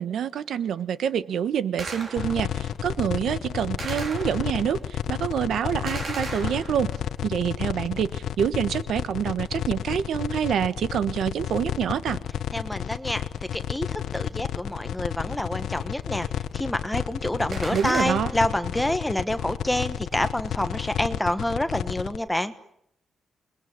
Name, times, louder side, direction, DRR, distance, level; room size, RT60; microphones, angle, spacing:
voice 1, 0.0-4.8 5.1-6.9 7.2-12.2 17.7-18.3, right 8 dB, 75° right, 13 dB, 1.3 m, -26 dB
Gunshot gunfire, 1.8-2.6 3.8-4.8 5.9-7.1 17.5-18.6, right 3 dB, 35° right, 4.4 m, -36 dB
sound 1, 2.2-22.2, left 9 dB, 70° left, 1.0 m, -31 dB
voice 2, 12.5-13.2 13.5-16.3 16.5-22.5, left 1 dB, 5° left, 10 dB, 1.3 m, -27 dB
28.5 x 21.5 x 9.7 m, 0.74 s
wide cardioid pair, 180°, 0 cm